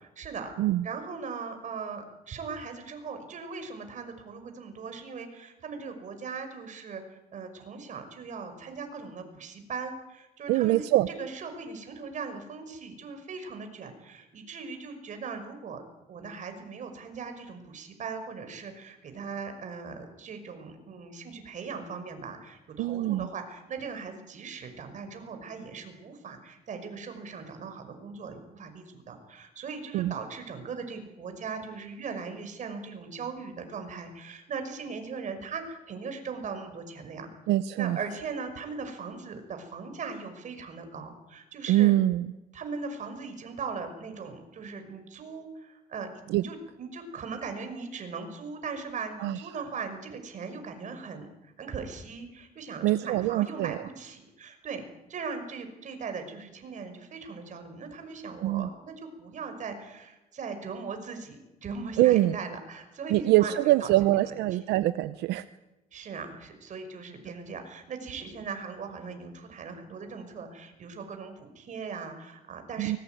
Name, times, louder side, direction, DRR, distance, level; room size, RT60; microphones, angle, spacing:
voice 1, 0.2-0.5 0.8-10.9 11.2-15.8 16.1-37.3 37.8-41.9 42.5-54.8 55.1-63.9 64.2-64.6 65.9-73.0, right 5 dB, 45° right, 7 dB, 5.8 m, -39 dB
voice 2, 10.5-11.1 22.8-23.3 29.9-30.1 37.5-38.0 41.7-42.3 46.3-46.4 49.2-49.4 52.8-53.7 58.4-58.7 62.0-62.4 63.1-65.5 72.8-73.0, right 15 dB, 85° right, 13 dB, 0.8 m, -24 dB
24.0 x 21.5 x 9.3 m, 1.0 s
cardioid pair, 110°, 17 cm